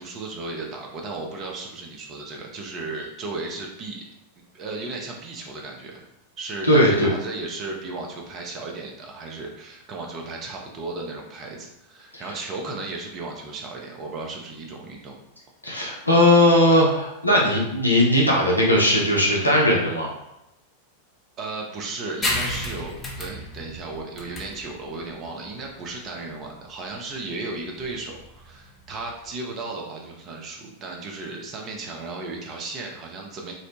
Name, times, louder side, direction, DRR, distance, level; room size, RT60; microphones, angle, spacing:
voice 1, 0.0-4.0 4.5-6.0 6.4-15.2 21.4-33.5, right 3 dB, 30° right, 0 dB, 0.5 m, -35 dB
voice 2, 6.6-7.1 12.1-12.4 15.6-20.1, left 1 dB, 85° left, -3 dB, 0.6 m, -18 dB
sound 1, 22.2-29.3, left 1 dB, 15° left, 0.5 m, -33 dB
2.7 x 2.0 x 2.9 m, 0.88 s
figure-of-eight pair, 90°, 0 cm